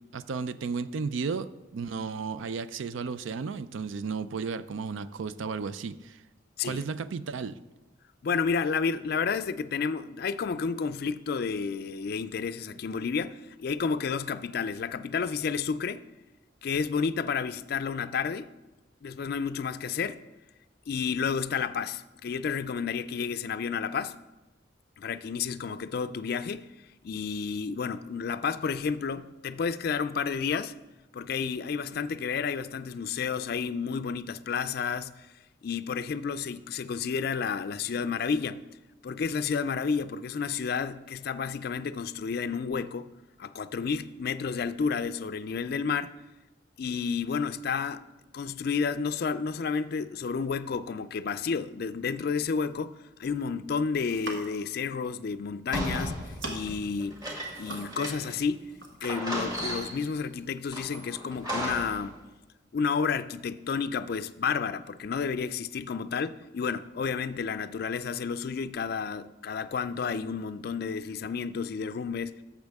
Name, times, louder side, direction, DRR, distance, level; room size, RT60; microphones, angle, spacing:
voice 1, 0.1-6.2 6.6-7.6, right 5 dB, 80° right, 14 dB, 0.4 m, -34 dB
voice 2, 8.2-16.0 16.6-18.5 19.0-20.2 20.9-24.2 25.0-26.7 27.0-30.7 31.1-35.3 35.6-38.6 39.0-43.1 43.4-46.1 46.8-48.0 48.3-57.2 57.6-58.7 59.0-62.2 62.7-72.3, left 5 dB, 50° left, 12 dB, 0.3 m, -31 dB
sound 1, 53.9-54.7 55.7-55.9 56.2-56.8 57.3-58.2 58.5-59.1 59.5-59.7, right 2 dB, 65° right, 1.5 m, -41 dB
sound 2, 55.7-58.5 58.7-58.8 59.0-60.1 60.7-62.1, equal, 20° right, 1.8 m, -35 dB
12.0 x 7.3 x 3.5 m, 1.1 s
head